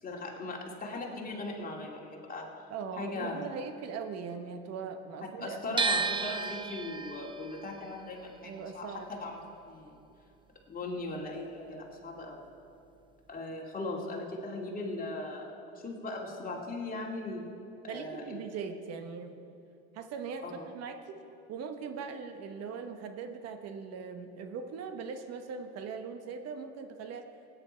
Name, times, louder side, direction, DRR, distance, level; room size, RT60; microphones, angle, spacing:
voice 1, 0.0-2.6 3.0-3.5 5.4-10.0 10.7-12.4 13.3-17.5 17.8-18.4 20.4-20.7, left 2 dB, 30° left, -1 dB, 2.4 m, -39 dB
voice 2, 2.7-6.1 8.4-9.1 17.9-19.4 19.9-21.2 21.5-27.3, right 5 dB, 55° right, 7 dB, 1.1 m, -40 dB
sound 1, 5.8-11.8 12.1-13.4, right 4 dB, 15° right, 0.6 m, -35 dB
17.0 x 9.6 x 4.4 m, 2.6 s
supercardioid pair, 90°, 30 cm